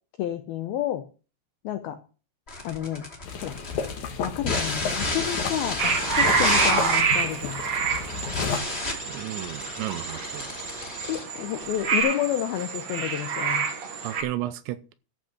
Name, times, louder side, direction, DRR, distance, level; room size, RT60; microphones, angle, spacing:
voice 1, 0.2-1.0 1.6-2.0 2.6-3.0 3.4-3.5 4.2-7.6 11.1-13.7, left 12 dB, 85° left, 2.1 m, -30 dB
sound 1, 2.5-12.0, left 2 dB, 20° left, 2.0 m, -32 dB
sound 2, 3.2-8.6, left 6 dB, 60° left, 2.0 m, -32 dB
sound 3, 5.8-14.2, right 5 dB, 50° right, 2.2 m, -27 dB
voice 2, 9.1-10.5 14.0-14.9, right 15 dB, 80° right, 2.8 m, -33 dB
14.0 x 5.8 x 6.4 m
omnidirectional pair, 5.4 m